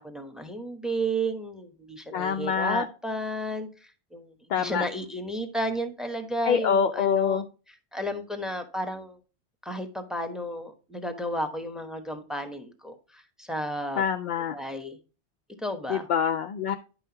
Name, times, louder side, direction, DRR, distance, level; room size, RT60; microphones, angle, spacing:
voice 1, 0.0-7.4 7.9-9.2 9.6-14.0 14.5-15.0 15.6-16.1, right 1 dB, ahead, 7 dB, 0.9 m, -33 dB
voice 2, 2.1-2.9 4.5-4.8 6.4-7.4 14.0-14.6 15.9-16.8, left 7 dB, 55° left, 7 dB, 0.5 m, -25 dB
9.9 x 5.6 x 2.8 m, 0.34 s
omnidirectional pair, 1.1 m